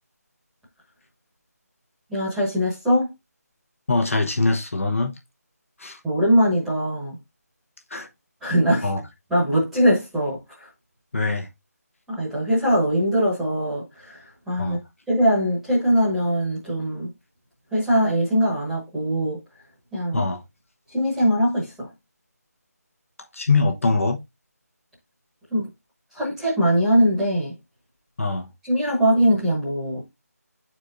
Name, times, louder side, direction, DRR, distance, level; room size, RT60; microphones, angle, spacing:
voice 1, 2.1-3.1 6.0-7.2 8.4-8.9 9.3-10.7 12.1-14.8 15.1-17.1 17.7-19.4 19.9-20.2 20.9-21.9 25.5-25.7 26.1-27.5 28.6-30.0, equal, 5° right, 1.2 m, -21 dB
voice 2, 3.9-5.2 5.8-6.0 7.9-8.1 8.8-9.0 11.1-11.5 14.6-14.8 20.1-20.4 23.3-24.2 28.2-28.5, left 3 dB, 55° left, 1.1 m, -23 dB
10.0 x 4.4 x 2.5 m
figure-of-eight pair, 170°, 9 cm